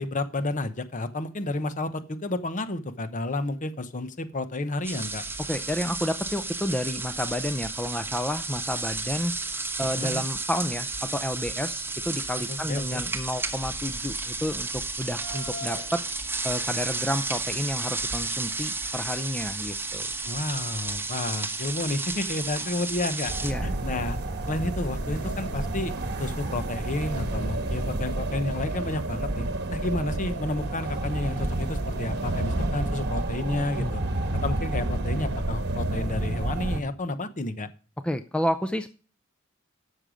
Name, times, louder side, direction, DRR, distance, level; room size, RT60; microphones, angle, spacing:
voice 1, 0.0-5.2 10.0-10.2 12.5-13.0 20.2-23.3 23.6-24.2 24.5-25.9 26.2-29.5 29.7-34.0 34.4-37.7, left 2 dB, 40° left, 11 dB, 0.9 m, -31 dB
sound 1, 4.8-23.5, right 3 dB, 10° right, 1.1 m, -32 dB
voice 2, 5.5-9.3 9.8-16.0 16.4-20.1 23.4-23.7 32.8-33.0 33.8-34.0 38.0-38.9, left 1 dB, 5° left, 9 dB, 0.5 m, -30 dB
sound 2, 15.1-25.5, left 1 dB, 60° left, 4.3 m, -49 dB
sound 3, 23.3-36.8, right 1 dB, 55° right, 1.3 m, -30 dB
12.5 x 6.7 x 5.0 m, 0.38 s
head